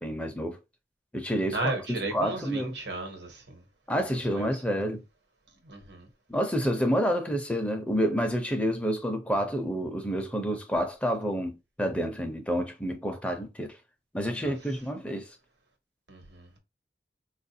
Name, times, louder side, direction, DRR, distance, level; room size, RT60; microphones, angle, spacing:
voice 1, 0.0-0.6 1.1-2.8 3.9-5.0 6.3-13.8 14.1-15.4, equal, 5° left, 0.5 m, -29 dB
voice 2, 1.5-3.6 3.9-4.0 4.3-4.5 5.6-6.1 14.4-14.5 16.1-16.6, right 2 dB, 85° right, 1.1 m, -35 dB
4.5 x 2.4 x 2.7 m
head